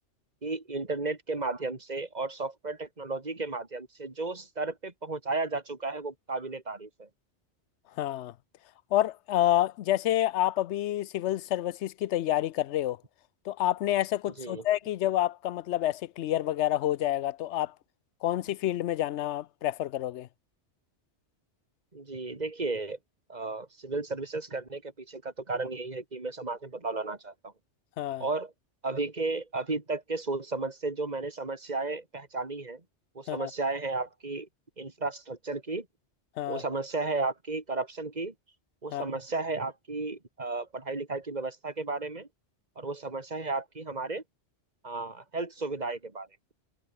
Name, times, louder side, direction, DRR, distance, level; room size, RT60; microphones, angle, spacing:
voice 1, 0.4-7.1 14.4-14.6 21.9-23.0 23.3-27.5 28.2-28.5 28.8-32.8 33.1-34.5 34.8-35.9 36.5-38.3 38.8-42.3 42.8-44.2 44.8-46.3, right 3 dB, 35° right, 2.8 m, -34 dB
voice 2, 8.0-8.3 8.9-13.0 13.5-17.7 18.2-20.3 28.0-28.2 33.3-33.5 36.4-36.6 38.9-39.0, left 13 dB, 75° left, 0.9 m, -28 dB
omnidirectional pair, 1.2 m